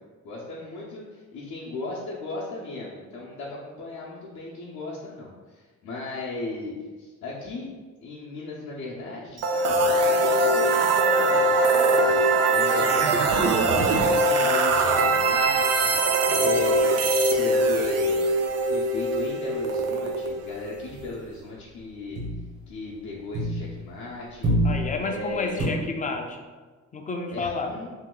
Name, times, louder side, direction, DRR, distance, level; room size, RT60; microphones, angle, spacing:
voice 1, 0.2-7.7 8.0-9.8 10.1-16.0 16.3-16.9 17.3-18.3 18.7-22.2 22.7-24.5 25.0-25.8 27.3-27.9, left 2 dB, 65° left, -7 dB, 0.7 m, -36 dB
sound 1, 9.4-21.2, right 2 dB, 55° right, 0.4 m, -22 dB
voice 2, 12.8-13.3 16.3-16.5 24.6-26.4 26.9-27.8, left 3 dB, 25° left, 4 dB, 0.4 m, -31 dB
sound 2, 15.5-19.2 19.5-19.8 20.1-24.0 24.2-25.6, right 1 dB, 85° right, 1.3 m, -31 dB
2.8 x 2.3 x 3.8 m, 1.3 s
cardioid pair, 90°, 30 cm